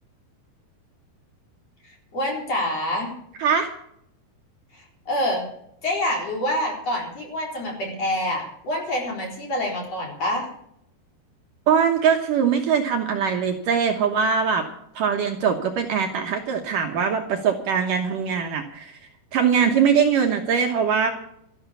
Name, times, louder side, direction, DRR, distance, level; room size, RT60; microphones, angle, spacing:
voice 1, 1.8-3.1 4.7-5.5 5.8-10.5, left 1 dB, 40° left, 0 dB, 5.0 m, -27 dB
voice 2, 11.7-14.7 15.0-19.0 19.3-21.1, right 7 dB, 65° right, 2 dB, 2.4 m, -22 dB
13.5 x 12.0 x 6.9 m, 0.72 s
omnidirectional pair, 4.7 m